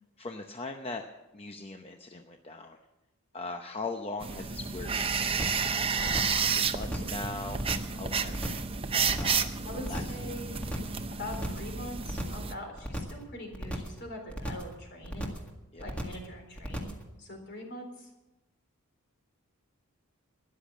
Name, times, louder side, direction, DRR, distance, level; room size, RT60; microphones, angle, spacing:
voice 1, 0.2-1.0 1.3-2.8 3.3-7.6 7.9-8.6 9.2-9.5 9.9-10.0 15.7-15.9, left 3 dB, 25° left, 5 dB, 0.7 m, -40 dB
sound 1, 4.2-12.5, right 6 dB, 25° right, 0.7 m, -31 dB
sound 2, 5.4-5.7 6.0-6.4 6.7-7.2 7.5-8.0 8.3-8.7 9.0-9.5 9.8-10.2 10.5-11.0 11.3-11.7 12.0-12.5 12.8-13.2 13.5-14.0 14.3-14.7 15.0-15.5 15.8-16.3 16.6-17.0, equal, 5° left, 1.8 m, -36 dB
voice 2, 9.6-10.6 11.1-15.4 15.8-18.1, left 1 dB, 50° left, 2 dB, 4.0 m, -43 dB
13.5 x 10.5 x 7.5 m, 0.98 s
head